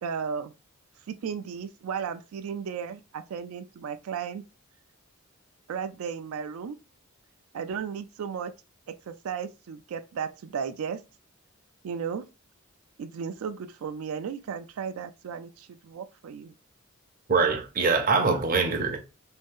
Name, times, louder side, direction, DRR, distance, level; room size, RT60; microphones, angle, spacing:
voice 1, 0.0-0.5 1.1-4.4 5.7-6.8 7.5-8.5 9.1-11.0 11.8-12.3 13.0-16.5, right 6 dB, 80° right, 0.3 m, -34 dB
voice 2, 17.3-19.0, right 4 dB, 40° right, 0.6 m, -23 dB
3.1 x 2.7 x 3.5 m
head